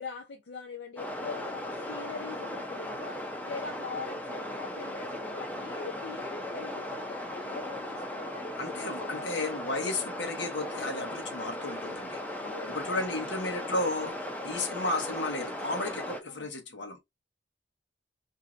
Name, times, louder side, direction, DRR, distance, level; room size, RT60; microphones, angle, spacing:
voice 1, 0.0-9.3 12.4-12.8 16.3-16.5, left 5 dB, 70° left, 0.5 m, -42 dB
sound 1, 1.0-16.2, left 1 dB, 10° left, 0.5 m, -37 dB
voice 2, 8.6-12.2 12.7-14.2 14.4-17.0, left 2 dB, 85° left, 1.0 m, -33 dB
3.0 x 2.7 x 2.4 m
head